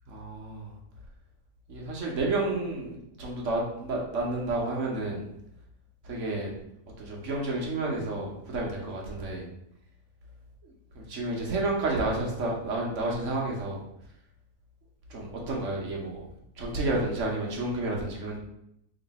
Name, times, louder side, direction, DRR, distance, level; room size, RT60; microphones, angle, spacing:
voice 1, 0.1-0.7 1.7-5.2 6.0-6.5 7.0-9.4 10.9-13.8 15.1-16.2 16.6-18.4, right 2 dB, 55° right, -2 dB, 1.1 m, -30 dB
3.2 x 3.1 x 4.0 m, 0.78 s
omnidirectional pair, 1.7 m